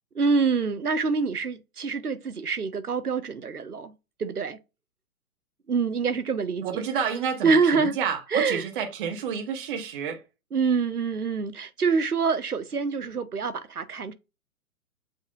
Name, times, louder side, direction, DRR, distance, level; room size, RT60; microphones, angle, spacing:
voice 1, 0.2-3.9 4.2-4.6 5.7-6.6 7.4-7.9 8.3-8.6 10.5-14.1, right 5 dB, 85° right, 0.8 m, -25 dB
voice 2, 6.6-10.2, right 7 dB, 35° right, 1.2 m, -30 dB
7.7 x 2.7 x 2.4 m
figure-of-eight pair, 120°, 44 cm